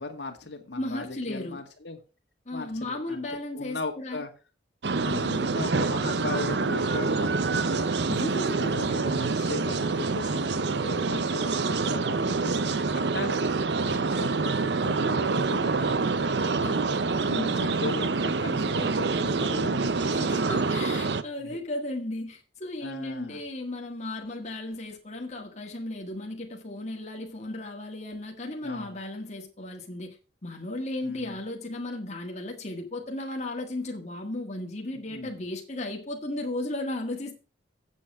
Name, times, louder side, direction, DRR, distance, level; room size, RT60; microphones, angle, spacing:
voice 1, 0.0-2.0 2.5-3.2 3.5-4.3 5.4-7.9 8.6-13.4 13.8-20.2 21.4-21.6 22.8-23.4 28.6-29.0 31.0-31.4 34.9-35.4, left 3 dB, 70° left, 2.0 m, -38 dB
voice 2, 0.8-1.6 2.4-4.2 5.0-5.5 8.1-8.8 16.6-16.8 17.2-17.6 20.1-30.2 30.4-37.4, left 1 dB, 40° left, 1.7 m, -35 dB
sound 1, 4.8-21.2, right 4 dB, 65° right, 0.7 m, -26 dB
8.3 x 7.5 x 6.0 m
head